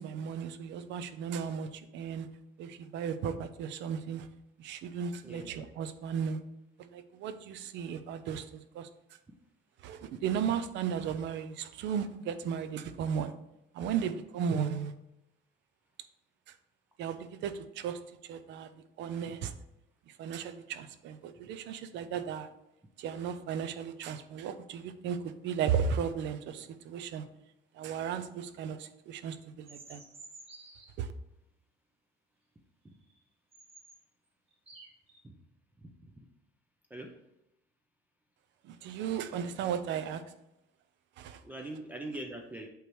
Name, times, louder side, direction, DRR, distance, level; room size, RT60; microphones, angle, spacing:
voice 1, 0.0-2.3 2.6-4.3 4.6-6.4 6.8-8.9 9.8-13.3 13.7-14.9 17.0-18.7 19.0-19.5 20.1-22.5 23.0-27.2 27.7-30.0 31.0-31.1 38.6-40.2 41.2-41.4, right 7 dB, 65° right, 11 dB, 0.6 m, -35 dB
voice 2, 5.2-5.6 19.3-19.4 35.2-35.4 35.8-36.1 36.9-37.1 41.4-42.7, right 1 dB, 10° right, 2 dB, 0.4 m, -42 dB
sound 1, 29.6-30.9 33.1-33.2 33.5-34.0 34.5-35.2, right 3 dB, 30° right, 1.3 m, -52 dB
8.1 x 3.1 x 4.6 m, 0.87 s
cardioid pair, 175°, 20 cm